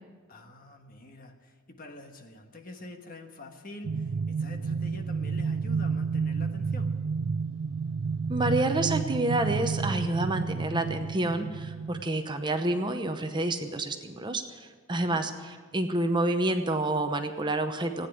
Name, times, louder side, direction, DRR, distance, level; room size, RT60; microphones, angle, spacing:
voice 1, 0.3-6.9 14.9-15.2, left 2 dB, 40° left, 5 dB, 1.4 m, -46 dB
sound 1, 3.8-12.0, right 5 dB, 60° right, 0.4 m, -30 dB
voice 2, 8.3-15.3 15.7-18.1, right 2 dB, 20° right, 7 dB, 0.8 m, -28 dB
16.0 x 9.6 x 9.2 m, 1.5 s
head